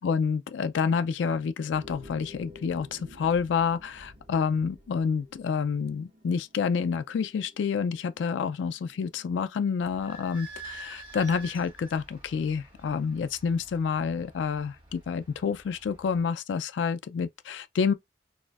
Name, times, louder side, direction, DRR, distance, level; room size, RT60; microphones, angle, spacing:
voice 1, 0.0-17.9, left 6 dB, 85° left, 0.3 m, -28 dB
sound 1, 1.7-9.3, left 1 dB, 65° right, 1.2 m, -52 dB
Idling / Squeak, 9.8-16.2, right 2 dB, 25° right, 1.5 m, -47 dB
4.1 x 2.6 x 2.3 m
head